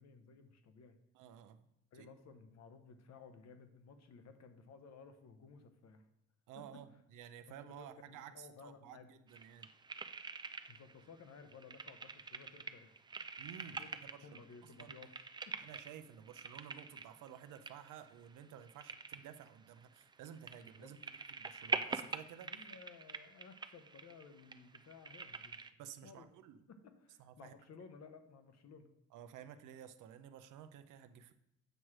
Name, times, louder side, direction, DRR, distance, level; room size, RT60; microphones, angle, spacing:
voice 1, 0.0-1.0 1.9-6.0 7.5-9.1 10.7-12.9 13.7-13.9 14.2-15.9 20.8-20.9 22.4-25.6 26.0-26.3 26.7-28.9, left 5 dB, 60° left, 8 dB, 0.9 m, -57 dB
voice 2, 1.1-1.7 1.9-2.1 6.5-9.7 13.4-14.5 14.8-15.0 15.6-22.5 25.8-26.6 27.2-27.5 29.1-31.3, right 9 dB, 85° right, 9 dB, 0.6 m, -53 dB
sound 1, 9.3-11.0 11.3-25.7, right 4 dB, 15° right, 0.3 m, -45 dB
7.8 x 3.1 x 6.0 m, 0.83 s
cardioid pair, 90°, 30 cm